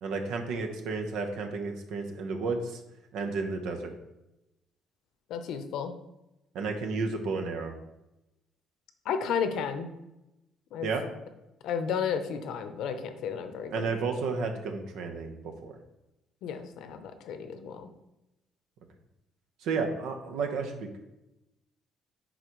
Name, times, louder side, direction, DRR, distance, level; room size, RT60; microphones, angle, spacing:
voice 1, 0.0-2.8 3.1-3.9 6.5-7.7 10.8-11.0 13.7-15.8 19.6-21.1, right 4 dB, 80° right, 4 dB, 1.0 m, -32 dB
voice 2, 5.3-5.9 9.0-9.9 10.7-10.9 11.6-13.8 16.4-17.9, left 7 dB, 70° left, 8 dB, 0.7 m, -32 dB
10.5 x 4.0 x 3.1 m, 0.92 s
cardioid pair, 145°, 0 cm